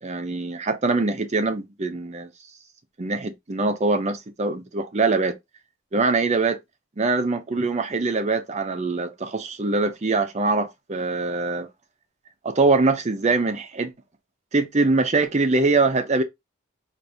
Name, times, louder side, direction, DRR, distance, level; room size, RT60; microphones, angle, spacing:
voice 1, 0.0-2.3 3.0-5.4 5.9-6.6 7.0-11.7 12.4-13.9 14.5-16.2, right 3 dB, 35° right, 0.6 m, -23 dB
4.6 x 2.6 x 2.6 m
head